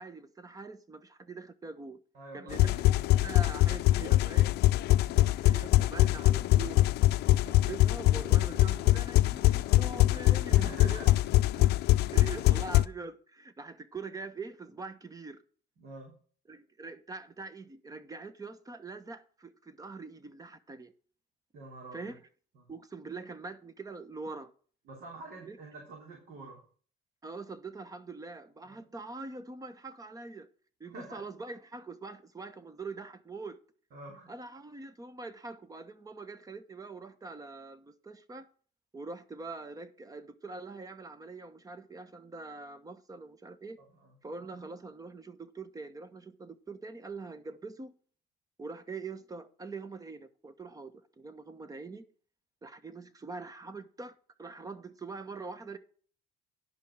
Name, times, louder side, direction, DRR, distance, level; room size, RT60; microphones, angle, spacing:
voice 1, 0.0-2.0 2.3-4.5 5.1-6.9 7.3-11.2 11.5-11.7 12.1-15.4 16.5-20.9 21.9-22.2 22.7-24.5 25.4-25.6 27.2-30.5 30.8-33.6 34.3-38.5 38.9-43.8 44.2-47.9 48.6-52.1 52.6-55.8, right 3 dB, 20° right, 1.1 m, -43 dB
voice 2, 2.1-2.6 4.8-5.2 10.5-11.0 15.8-16.2 21.5-22.1 22.6-22.7 24.9-26.6 28.6-28.8 30.9-31.2 33.9-34.3 43.8-44.1, right 2 dB, 65° right, 3.5 m, -47 dB
sound 1, 2.5-12.8, left 16 dB, 75° left, 0.5 m, -24 dB
10.5 x 5.6 x 6.2 m
cardioid pair, 110°, 17 cm